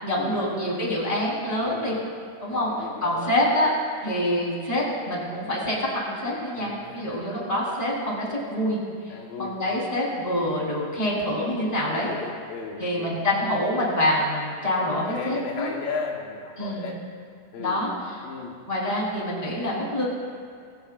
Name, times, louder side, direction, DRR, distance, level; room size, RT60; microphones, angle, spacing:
voice 1, 0.0-1.9 2.4-2.7 3.0-3.7 4.0-8.8 9.4-12.1 12.8-15.7 16.6-16.9 17.6-17.9 18.7-20.0, left 1 dB, 10° left, -5 dB, 3.6 m, -26 dB
voice 2, 2.5-3.4 6.5-7.3 9.1-9.6 11.6-13.2 14.9-17.0 17.5-17.8 18.2-18.6, left 4 dB, 80° left, -1 dB, 3.0 m, -36 dB
22.0 x 17.0 x 2.5 m, 2.3 s
omnidirectional pair, 4.1 m